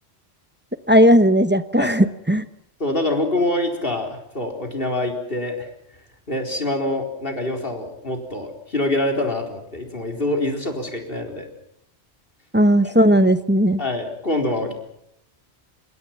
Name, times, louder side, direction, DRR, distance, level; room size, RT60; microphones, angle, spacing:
voice 1, 0.9-2.4 12.5-13.8, equal, 10° right, 12 dB, 1.0 m, -16 dB
voice 2, 2.8-5.7 6.3-11.5 12.8-12.9 13.8-14.7, left 1 dB, 55° left, 3 dB, 4.4 m, -25 dB
26.5 x 21.5 x 5.9 m, 0.78 s
omnidirectional pair, 1.1 m